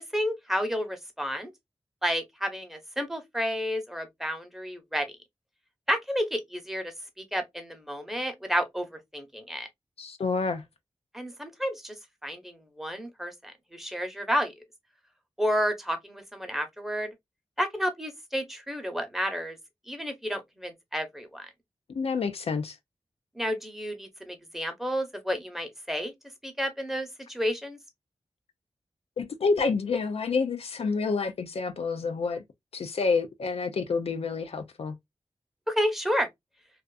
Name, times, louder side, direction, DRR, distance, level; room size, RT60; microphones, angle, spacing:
voice 1, 0.1-1.5 2.0-5.1 5.9-9.7 11.1-11.9 12.2-14.5 15.4-17.1 17.6-19.6 19.9-21.5 23.4-26.1 26.4-27.8 35.7-36.3, equal, 5° right, 0.8 m, -31 dB
voice 2, 10.0-10.6 21.9-22.8 29.2-32.4 32.7-34.9, left 4 dB, 70° left, 0.4 m, -28 dB
2.4 x 2.4 x 2.3 m
cardioid pair, 50°, 11 cm